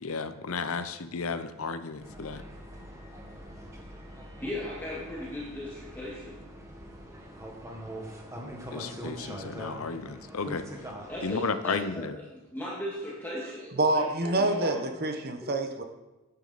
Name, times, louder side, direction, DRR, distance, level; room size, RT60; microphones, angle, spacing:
voice 1, 0.0-2.4 8.7-10.7 11.2-12.2, left 4 dB, 70° left, 11 dB, 0.7 m, -33 dB
sound 1, 2.0-11.2, equal, 15° right, 1.4 m, -43 dB
voice 2, 4.4-6.4 11.1-12.1 12.3-14.9 15.4-15.5, left 1 dB, 10° left, -6 dB, 1.7 m, -37 dB
voice 3, 13.8-15.8, right 2 dB, 45° right, 5 dB, 0.9 m, -27 dB
9.8 x 9.6 x 4.1 m, 1.1 s
head